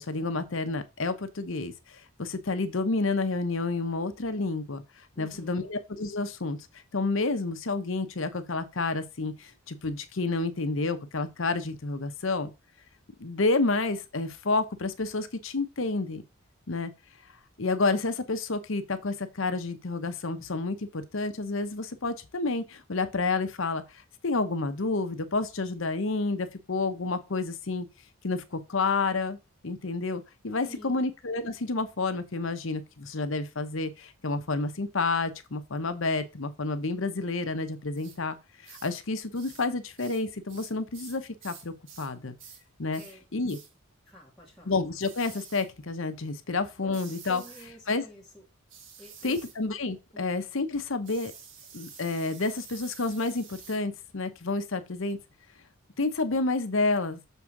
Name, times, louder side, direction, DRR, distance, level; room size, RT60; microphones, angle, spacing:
voice 1, 0.0-4.8 5.2-6.6 6.9-12.5 13.2-16.2 16.7-16.9 17.6-23.8 24.2-27.9 28.2-29.4 29.6-38.4 38.6-42.4 42.8-43.0 43.3-43.6 44.7-47.4 47.9-48.0 49.2-51.3 51.7-55.2 56.0-57.2, left 3 dB, 60° left, 0.9 m, -29 dB
voice 2, 5.1-5.7 30.7-31.1 43.0-43.3 44.0-44.7 46.8-48.4 49.0-49.4 50.1-50.4, equal, ahead, 2.0 m, -50 dB
sound 1, 37.9-38.2 38.6-39.0 39.3-39.7 40.0-42.1 42.4-42.6 42.9-43.2 43.5-43.7 45.0-45.7 46.9-47.7 48.7-49.6 51.0-53.8, right 6 dB, 60° right, 1.6 m, -49 dB
6.9 x 3.6 x 5.9 m
head